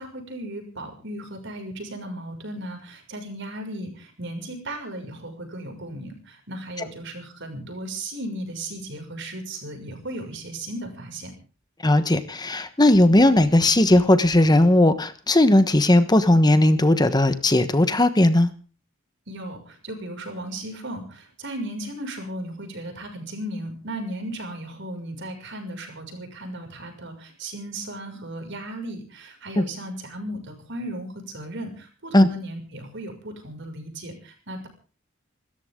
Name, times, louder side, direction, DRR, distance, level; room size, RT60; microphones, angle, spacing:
voice 1, 0.0-11.3 19.3-34.7, right 1 dB, 60° right, 4 dB, 6.2 m, -36 dB
voice 2, 11.8-18.5 29.6-29.7 32.1-32.3, left 1 dB, 20° left, 11 dB, 1.2 m, -17 dB
27.5 x 14.0 x 3.8 m, 0.38 s
head